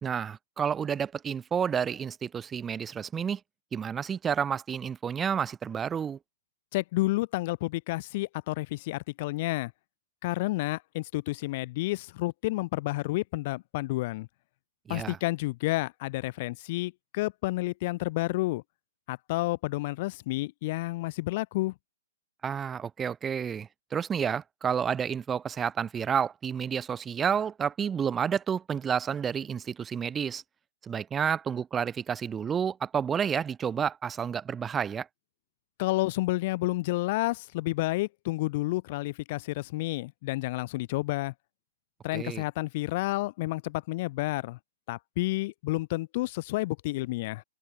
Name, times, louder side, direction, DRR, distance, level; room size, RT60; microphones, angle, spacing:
voice 1, 0.0-3.4 3.7-6.2 14.9-15.2 22.4-30.4 30.8-35.1 42.1-42.4, right 7 dB, 15° right, 0.7 m, -30 dB
voice 2, 6.7-9.7 10.2-14.3 14.9-18.6 19.1-21.7 35.8-41.3 42.0-44.6 44.9-47.4, left 20 dB, 45° left, 0.9 m, -30 dB
figure-of-eight pair, 115°, 0 cm